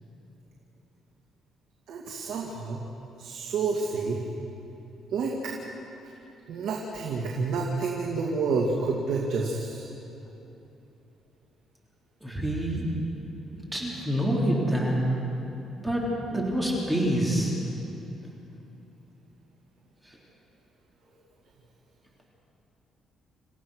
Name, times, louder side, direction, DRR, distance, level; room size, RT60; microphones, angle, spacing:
voice 1, 1.9-2.8 3.2-4.2 5.1-5.5 6.5-9.9, right 4 dB, 75° right, -1 dB, 2.3 m, -29 dB
voice 2, 12.2-12.9 13.5-15.1 15.8-17.6, equal, 10° right, -3 dB, 3.7 m, -27 dB
28.0 x 15.5 x 6.5 m, 3.0 s
cardioid pair, 130°, 0 cm